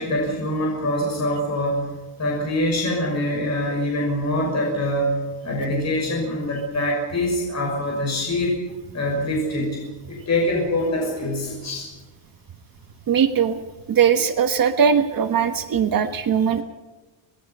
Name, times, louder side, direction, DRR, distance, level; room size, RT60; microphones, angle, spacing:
voice 1, 0.0-1.9 2.2-8.5 8.9-11.9, left 1 dB, 35° left, -1 dB, 6.3 m, -24 dB
voice 2, 13.1-13.6 13.9-16.6, right 7 dB, 45° right, 8 dB, 1.3 m, -20 dB
25.0 x 20.5 x 5.5 m, 1.2 s
cardioid pair, 170°, 49 cm